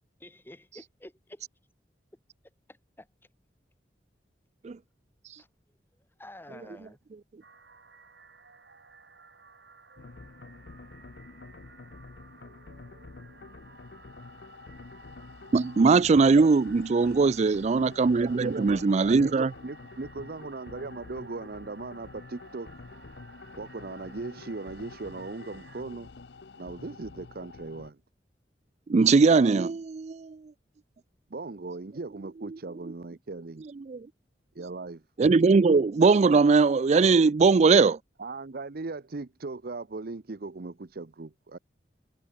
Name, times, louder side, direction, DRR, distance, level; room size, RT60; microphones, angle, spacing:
voice 1, 0.2-1.4 2.7-3.1 5.4-5.5 6.2-7.0, left 1 dB, 15° left, 2.8 m, -49 dB
sound 1, 7.4-25.8, right 4 dB, 80° right, 5.2 m, -55 dB
sound 2, 10.0-27.9, left 3 dB, 70° left, 0.7 m, -48 dB
voice 2, 15.5-19.5 28.9-30.4 33.9-34.0 35.2-38.0, right 4 dB, 40° right, 0.4 m, -20 dB
voice 3, 18.1-18.8 19.1-22.7 23.6-26.1 26.6-28.0 31.3-33.6 34.5-35.0 38.2-41.6, right 3 dB, 60° right, 0.8 m, -38 dB
head